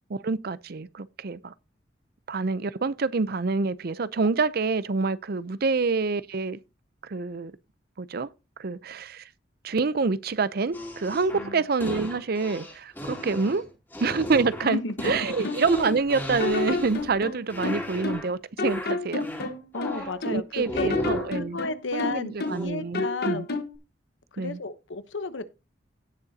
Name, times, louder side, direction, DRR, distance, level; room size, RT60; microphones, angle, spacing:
voice 1, 0.1-1.5 2.3-6.6 7.0-7.5 8.0-8.3 8.6-9.3 9.6-13.6 14.0-19.3 20.3-21.6 21.9-23.5 24.4-24.6, right 4 dB, 55° right, 0.6 m, -27 dB
sound 1, 10.7-17.2 17.5-18.3 18.6-20.2 20.6-21.4 22.5-22.7, equal, 10° left, 3.6 m, -36 dB
voice 2, 11.3-11.6 14.6-15.1 15.4-15.5 19.7-20.9 21.3-23.5 24.3-25.4, left 3 dB, 85° left, 1.0 m, -33 dB
sound 2, 15.0-16.0 16.4-18.3 18.6-20.4 20.8-22.7 22.9-23.8, left 3 dB, 60° left, 1.3 m, -30 dB
17.0 x 6.5 x 2.8 m
head